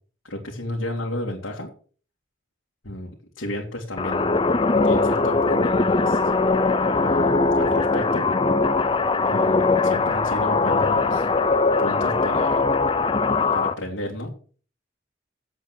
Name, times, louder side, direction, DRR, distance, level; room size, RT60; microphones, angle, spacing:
voice 1, 0.2-1.7 2.8-4.3 4.8-6.2 7.0-8.3 9.3-11.3 11.8-12.7 13.5-14.3, left 1 dB, 85° left, -4 dB, 2.6 m, -32 dB
sound 1, 4.0-13.7, left 3 dB, 25° left, 0.6 m, -21 dB
9.1 x 8.0 x 6.2 m, 0.41 s
head